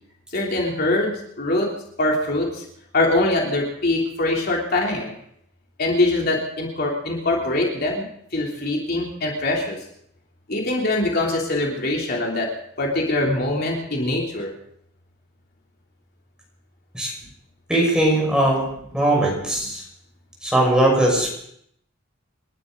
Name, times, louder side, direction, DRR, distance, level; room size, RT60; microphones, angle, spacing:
voice 1, 0.3-2.6 2.9-5.1 5.8-8.1 8.3-9.8 10.5-12.5 12.8-14.5, left 2 dB, 50° left, -2 dB, 3.2 m, -23 dB
voice 2, 17.7-18.6 18.9-19.8 20.4-21.3, right 1 dB, 5° right, -2 dB, 5.8 m, -19 dB
28.5 x 12.5 x 3.9 m, 0.71 s
head